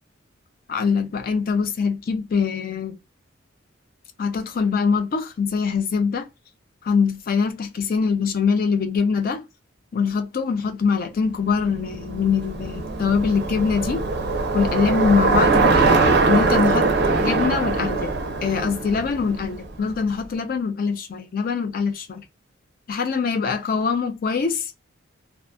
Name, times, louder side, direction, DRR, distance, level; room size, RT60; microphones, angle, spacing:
voice 1, 0.7-3.0 4.2-6.3 6.8-9.4 9.9-14.0 14.5-15.9 16.3-16.9 17.2-18.1 18.4-22.2 22.9-24.7, left 5 dB, 45° left, 0.3 m, -23 dB
Bicycle, 11.6-19.9, right 3 dB, 55° right, 0.5 m, -22 dB
2.6 x 2.5 x 2.2 m
head